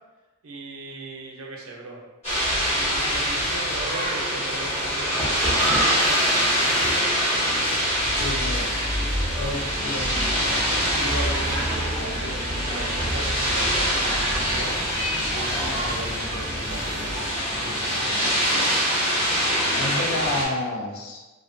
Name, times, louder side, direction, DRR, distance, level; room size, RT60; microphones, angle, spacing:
voice 1, 0.4-2.0 2.7-7.2 10.9-14.7 15.3-18.2, right 2 dB, 75° right, 0 dB, 0.5 m, -37 dB
sound 1, 2.2-20.4, equal, 30° left, 0.9 m, -24 dB
Car backing, 4.5-18.4, equal, 5° right, 0.4 m, -33 dB
voice 2, 8.2-8.7 9.4-10.4 19.8-21.2, left 2 dB, 85° left, 1 dB, 0.4 m, -30 dB
2.5 x 2.2 x 2.4 m, 1.1 s
head